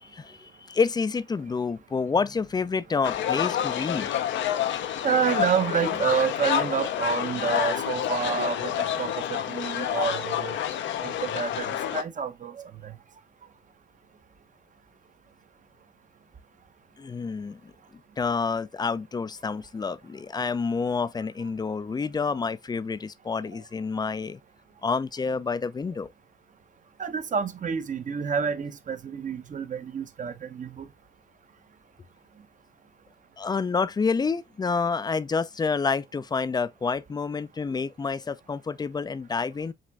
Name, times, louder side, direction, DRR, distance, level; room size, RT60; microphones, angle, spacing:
voice 1, 0.0-4.1 17.0-17.7 18.2-24.4 24.8-26.1 33.4-39.7, left 5 dB, 20° left, 0.4 m, -28 dB
sound 1, 3.0-12.0, left 10 dB, 70° left, 0.6 m, -28 dB
voice 2, 5.0-10.5 11.0-12.9 27.0-30.8, right 6 dB, 40° right, 0.8 m, -29 dB
7.4 x 2.5 x 2.2 m
cardioid pair, 90°, 20 cm